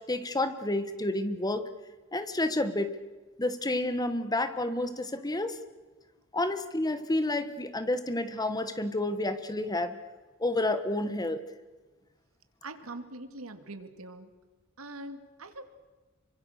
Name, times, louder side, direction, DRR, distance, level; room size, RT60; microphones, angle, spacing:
voice 1, 0.0-1.7 2.1-2.9 3.4-5.6 6.3-10.0 10.4-11.4, left 1 dB, 20° left, 10 dB, 1.4 m, -30 dB
voice 2, 12.6-14.3 14.8-15.6, right 2 dB, 80° right, 8 dB, 2.3 m, -43 dB
27.5 x 24.5 x 6.6 m, 1.2 s
head